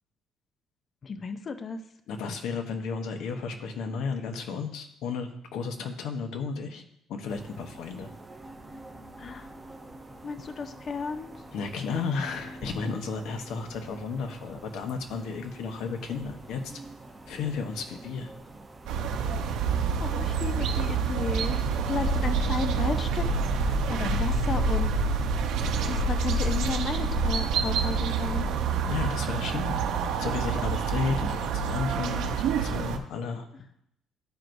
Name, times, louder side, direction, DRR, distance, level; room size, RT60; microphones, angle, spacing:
voice 1, 1.0-1.8 9.2-9.5 10.2-11.3 19.5-19.7 20.0-21.6 21.9-23.2 23.6-24.9 25.8-28.5, left 4 dB, 35° left, 8 dB, 0.5 m, -33 dB
voice 2, 2.1-6.8 7.1-8.1 11.5-16.7 17.3-18.3 28.8-33.5, left 5 dB, 75° left, 5 dB, 1.0 m, -33 dB
sound 1, 7.3-22.4, right 1 dB, 15° right, 0.7 m, -47 dB
sound 2, 18.9-33.0, right 6 dB, 75° right, 0.7 m, -28 dB
sound 3, 22.0-29.6, left 9 dB, 90° left, 1.5 m, -34 dB
12.5 x 4.5 x 2.6 m, 0.74 s
cardioid pair, 135°, 0 cm